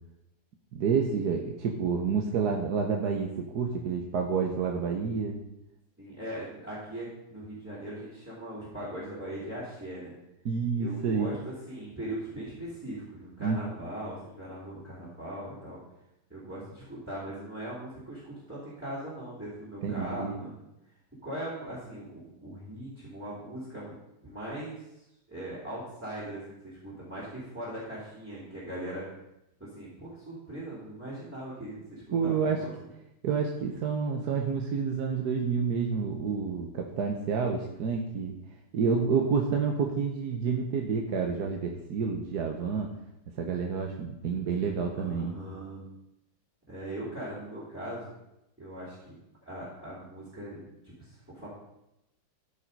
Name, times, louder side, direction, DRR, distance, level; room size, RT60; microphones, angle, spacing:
voice 1, 0.7-5.4 10.4-11.3 13.4-13.6 19.8-20.4 32.1-32.6 33.2-38.3 38.7-42.9 43.4-45.3, right 5 dB, 65° right, 1 dB, 1.4 m, -29 dB
voice 2, 6.0-10.1 10.8-15.8 16.3-20.6 21.2-24.0 24.2-24.9 25.3-29.0 29.6-32.9 45.0-45.8 46.7-48.1 48.6-49.1 49.4-51.5, right 1 dB, 5° right, -10 dB, 3.1 m, -40 dB
13.0 x 5.5 x 5.3 m, 0.88 s
omnidirectional pair, 1.9 m